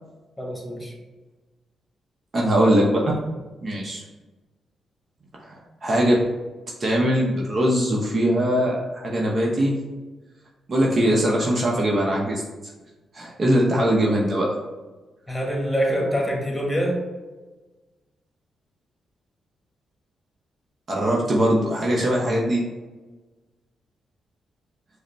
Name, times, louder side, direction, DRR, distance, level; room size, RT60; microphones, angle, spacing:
voice 1, 0.4-0.9 15.3-17.0, equal, 10° left, 0 dB, 1.4 m, -25 dB
voice 2, 2.3-3.0 3.6-4.0 5.4-6.2 6.8-9.7 10.7-12.4 13.1-14.5 20.9-22.6, equal, 50° right, -2 dB, 0.7 m, -21 dB
4.8 x 2.1 x 3.3 m, 1.2 s
supercardioid pair, 45°, 0 cm